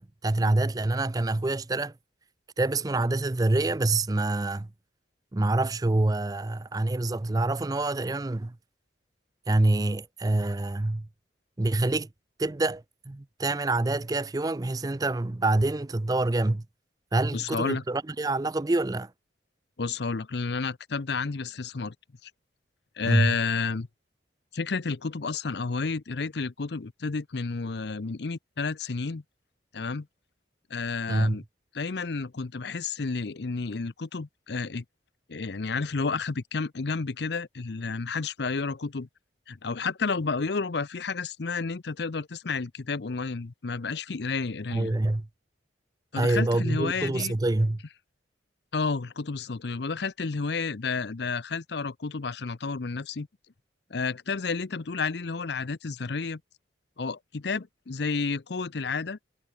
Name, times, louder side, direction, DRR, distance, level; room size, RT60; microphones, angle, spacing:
voice 1, 0.0-1.9 2.6-4.7 5.3-8.6 9.5-11.1 11.6-12.1 12.4-16.6 17.1-19.1 23.0-23.4 31.1-31.4 44.7-45.3 46.1-47.8, right 2 dB, 20° right, 0.4 m, -26 dB
voice 2, 17.3-17.8 19.8-21.9 22.2-22.3 23.0-23.9 24.5-29.2 29.7-30.1 30.7-31.4 31.7-34.8 35.3-39.1 39.5-44.9 46.1-47.3 48.7-53.3 53.9-56.4 57.0-59.2, left 4 dB, 65° left, 0.7 m, -31 dB
head